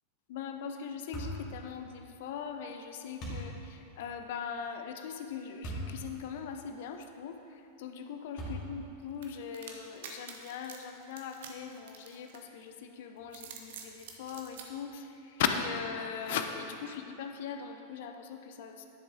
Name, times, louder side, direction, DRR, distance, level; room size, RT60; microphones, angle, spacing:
voice 1, 0.3-18.9, left 7 dB, 55° left, 6 dB, 0.6 m, -39 dB
sound 1, 1.1-1.5 3.2-3.5 5.6-5.9 6.5-6.6 8.4-8.9, right 1 dB, 35° left, 2.3 m, -38 dB
sound 2, 9.2-12.7 13.2-14.7, right 7 dB, 55° right, 1.0 m, -47 dB
11.0 x 6.9 x 3.8 m, 2.7 s
figure-of-eight pair, 90°, 0 cm